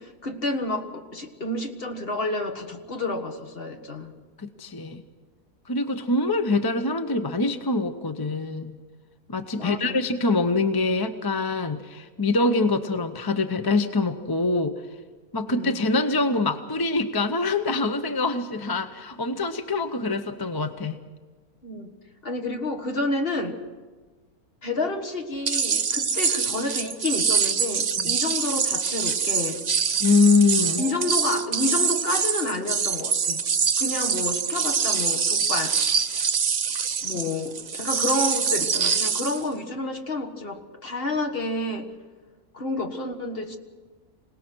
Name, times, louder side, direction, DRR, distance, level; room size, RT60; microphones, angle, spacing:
voice 1, 0.0-4.1 9.5-10.0 15.5-15.7 21.6-21.9 22.2-23.6 24.6-29.6 30.8-33.4 33.8-35.8 37.0-41.9 42.5-43.6, left 2 dB, 40° left, 4 dB, 1.8 m, -29 dB
voice 2, 4.4-5.0 5.7-8.8 9.3-14.7 15.3-21.0 28.0-28.2 30.0-30.8, left 3 dB, 20° left, 8 dB, 0.6 m, -24 dB
sound 1, 25.5-39.4, right 6 dB, 45° right, 0.6 m, -25 dB
26.0 x 18.5 x 6.2 m, 1.3 s
omnidirectional pair, 1.6 m